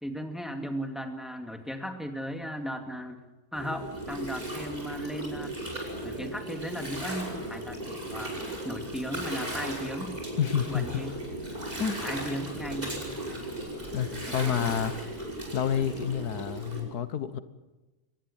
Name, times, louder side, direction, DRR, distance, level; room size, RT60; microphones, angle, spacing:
voice 1, 0.0-3.2 3.5-5.6 6.0-8.3 8.6-10.2 10.7-11.2 12.0-13.2 14.3-15.0, equal, ahead, 5 dB, 2.3 m, -36 dB
Gurgling, 3.5-16.8, right 1 dB, 25° right, 5.8 m, -36 dB
voice 2, 10.4-11.0 11.8-12.0 13.9-14.9 15.5-17.4, left 9 dB, 85° left, 13 dB, 1.6 m, -29 dB
23.5 x 19.0 x 8.9 m, 1.1 s
omnidirectional pair, 1.6 m